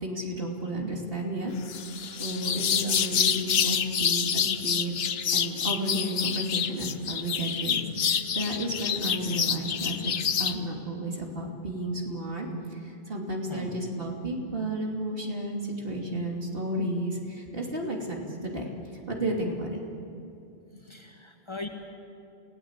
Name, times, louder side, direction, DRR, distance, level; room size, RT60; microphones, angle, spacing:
voice 1, 0.0-1.5 2.2-12.8 13.1-18.6 19.1-19.8, right 1 dB, 65° right, 0 dB, 3.0 m, -32 dB
sound 1, 1.6-10.6, left 7 dB, 75° left, 1.1 m, -27 dB
voice 2, 13.5-13.8 20.8-21.7, left 2 dB, 25° left, 2 dB, 2.0 m, -40 dB
28.5 x 18.0 x 8.1 m, 2.6 s
omnidirectional pair, 1.1 m